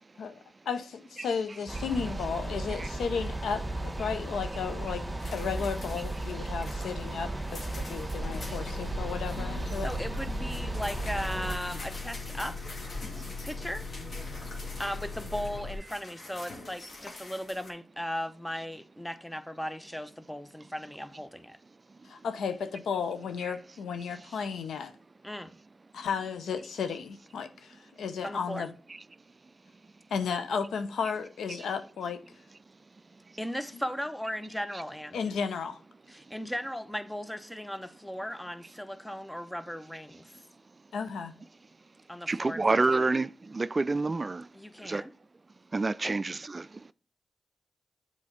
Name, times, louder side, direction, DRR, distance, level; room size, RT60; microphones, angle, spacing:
voice 1, 0.7-5.0 5.3-9.9 22.1-24.9 25.9-28.7 30.1-32.2 35.1-35.8 40.9-41.3, left 6 dB, 90° left, 0.7 m, -34 dB
sound 1, 1.7-11.6, right 2 dB, 15° right, 1.7 m, -35 dB
sound 2, 5.2-17.7, left 2 dB, 60° left, 1.8 m, -47 dB
Bus, 8.2-15.8, left 3 dB, 40° left, 2.7 m, -39 dB
voice 2, 9.7-12.8 13.4-13.9 14.8-21.6 25.2-25.5 28.2-28.7 33.4-35.2 36.1-40.3 42.1-42.8 44.5-45.1 46.0-46.1, equal, 10° left, 0.8 m, -37 dB
voice 3, 42.3-44.5 44.8-45.0 45.7-46.9, right 3 dB, 35° right, 0.3 m, -28 dB
7.3 x 4.2 x 5.1 m
cardioid pair, 55°, 0 cm